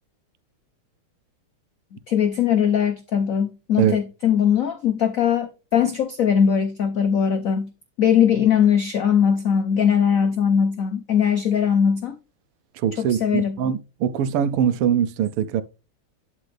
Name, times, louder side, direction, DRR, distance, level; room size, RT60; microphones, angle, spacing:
voice 1, 2.1-7.7 8.0-12.2 13.0-13.6, left 8 dB, 70° left, 0.8 m, -20 dB
voice 2, 12.8-15.6, right 9 dB, 85° right, 1.6 m, -22 dB
11.5 x 4.2 x 3.3 m
omnidirectional pair, 2.4 m